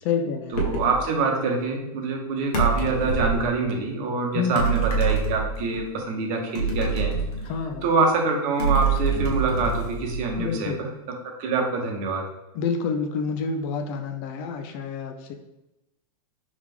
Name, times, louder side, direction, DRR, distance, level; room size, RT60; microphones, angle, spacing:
voice 1, 0.0-0.6 4.3-4.6 7.4-7.9 10.3-10.8 12.5-15.3, left 5 dB, 35° left, 6 dB, 0.4 m, -28 dB
sound 1, 0.5-1.0 2.5-3.5 4.6-5.8 6.6-7.9 8.6-10.5, right 4 dB, 70° left, 1.2 m, -25 dB
voice 2, 0.5-7.2 7.8-10.9 11.4-12.2, right 3 dB, 40° right, 1 dB, 1.0 m, -25 dB
3.4 x 3.2 x 3.4 m, 0.93 s
hypercardioid pair, 125°, 20 cm